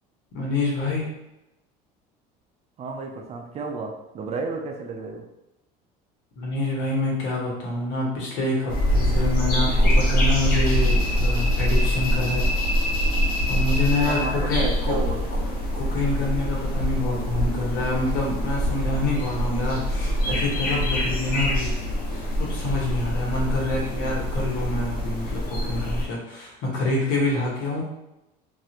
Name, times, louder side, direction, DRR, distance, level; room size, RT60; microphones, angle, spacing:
voice 1, 0.3-1.1 6.4-12.5 13.5-15.0 15.7-21.7 22.1-27.8, left 2 dB, 75° left, -3 dB, 1.2 m, -27 dB
voice 2, 2.8-5.3 14.0-15.2, right 4 dB, 35° right, 3 dB, 0.5 m, -32 dB
sound 1, 8.7-26.0, equal, 55° left, 1.0 m, -24 dB
3.0 x 2.6 x 2.8 m, 0.90 s
cardioid pair, 120°, 18 cm